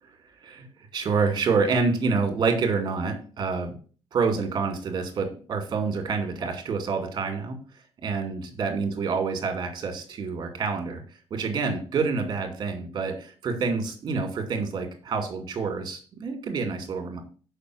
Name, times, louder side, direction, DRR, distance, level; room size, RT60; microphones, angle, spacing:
voice 1, 0.9-3.8 4.1-7.6 8.0-11.0 11.3-17.2, right 4 dB, 45° right, 5 dB, 2.3 m, -27 dB
6.7 x 5.5 x 6.2 m, 0.39 s
cardioid pair, 125°, 10 cm